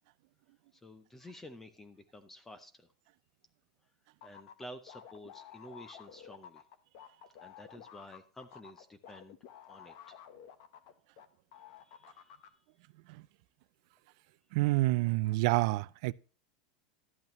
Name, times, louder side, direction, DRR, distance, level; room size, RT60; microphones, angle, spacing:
voice 1, 0.7-2.9 4.2-6.6 7.4-9.4 9.7-10.2 11.8-12.4, left 1 dB, 10° left, 0.6 m, -51 dB
sound 1, 4.2-11.3 11.5-12.5, left 9 dB, 50° left, 1.1 m, -52 dB
voice 2, 14.5-16.1, right 19 dB, 50° right, 0.4 m, -28 dB
12.0 x 8.5 x 3.0 m
supercardioid pair, 170°, 4 cm